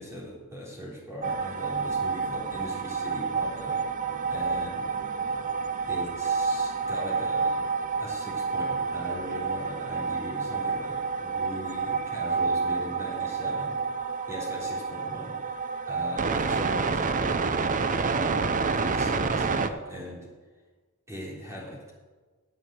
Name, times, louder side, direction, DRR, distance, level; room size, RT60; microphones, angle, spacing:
voice 1, 0.0-3.9 4.3-4.9 5.8-7.6 8.0-13.8 14.3-15.4 15.9-20.3 21.1-21.9, equal, 15° right, -5 dB, 3.7 m, -39 dB
sound 1, 1.2-19.7, right 4 dB, 35° right, 0.6 m, -29 dB
9.4 x 9.1 x 7.5 m, 1.3 s
head